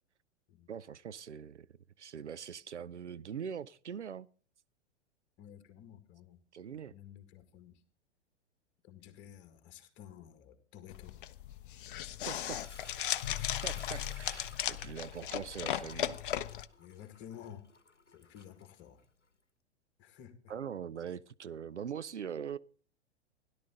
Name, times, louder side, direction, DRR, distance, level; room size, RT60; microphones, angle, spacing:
voice 1, 0.7-1.7 2.0-4.3 6.5-6.9 12.3-12.6 13.6-16.2 20.5-22.6, right 8 dB, 75° right, 0.6 m, -42 dB
voice 2, 5.4-6.4 6.7-7.8 8.8-11.2 13.3-14.0 16.8-17.6 18.1-19.0 20.0-20.5, left 10 dB, 30° left, 2.0 m, -52 dB
sound 1, 10.9-16.7, left 11 dB, 50° left, 0.7 m, -37 dB
Sink (filling or washing) / Liquid, 12.3-19.2, left 3 dB, 85° left, 1.0 m, -55 dB
17.0 x 11.5 x 3.8 m
figure-of-eight pair, 100°, 35 cm